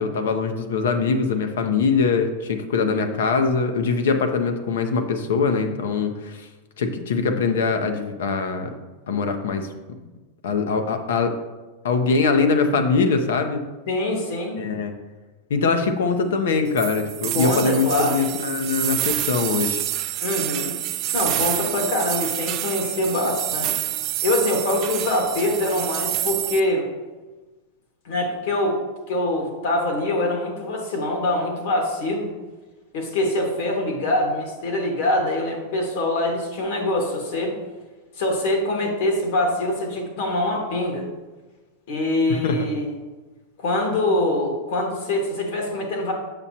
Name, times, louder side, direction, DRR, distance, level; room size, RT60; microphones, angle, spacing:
voice 1, 0.0-6.5 6.8-8.7 9.1-9.7 10.4-11.4 11.8-13.6 14.6-14.9 15.5-19.8 42.3-42.7, left 4 dB, 85° left, 7 dB, 0.7 m, -22 dB
voice 2, 13.9-14.6 17.3-18.2 20.2-20.7 21.1-23.7 24.2-26.8 28.0-28.8 29.1-32.3 32.9-37.6 38.2-41.0 41.9-42.9 43.6-46.1, left 1 dB, 70° left, 1 dB, 1.8 m, -24 dB
sound 1, 16.8-26.6, right 14 dB, 40° right, 0.4 m, -27 dB
6.8 x 6.1 x 2.9 m, 1.2 s
supercardioid pair, 145°, 0 cm